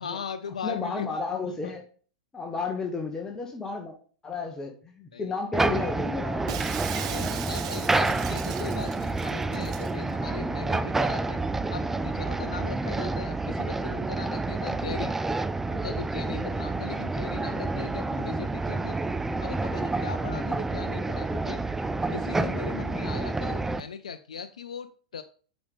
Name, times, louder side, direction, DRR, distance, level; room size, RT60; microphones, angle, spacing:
voice 1, 0.0-1.2 1.6-1.7 5.1-5.3 6.9-11.4 11.7-15.1 15.7-19.0 19.4-21.6 22.1-25.2, left 6 dB, 75° left, 10 dB, 0.5 m, -39 dB
voice 2, 0.6-1.8 2.3-3.9 4.2-6.7 20.2-20.5, left 4 dB, 15° left, 2 dB, 1.2 m, -33 dB
sound 1, 5.5-23.8, right 3 dB, 10° right, 0.4 m, -29 dB
Shatter, 6.5-9.9, right 11 dB, 60° right, 0.6 m, -38 dB
8.6 x 5.2 x 3.5 m, 0.42 s
figure-of-eight pair, 100°, 4 cm